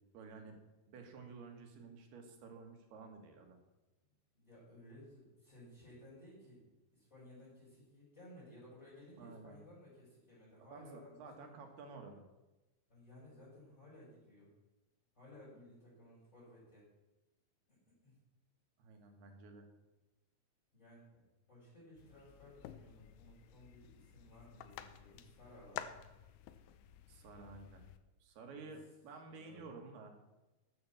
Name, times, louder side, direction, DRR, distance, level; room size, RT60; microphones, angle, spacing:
voice 1, 0.1-0.6 0.9-3.6 9.2-9.6 10.7-12.2 18.8-19.7 27.1-27.8 28.2-30.2, right 4 dB, 80° right, 4 dB, 3.6 m, -52 dB
voice 2, 4.3-6.6 6.9-11.5 12.9-14.5 15.1-16.8 17.7-17.8 18.0-18.2 20.7-25.9 28.4-28.7 29.2-29.6, left 1 dB, 20° left, -9 dB, 6.4 m, -58 dB
sound 1, 22.0-28.0, left 11 dB, 85° left, 2.7 m, -52 dB
12.5 x 8.7 x 7.1 m, 1.1 s
omnidirectional pair, 4.5 m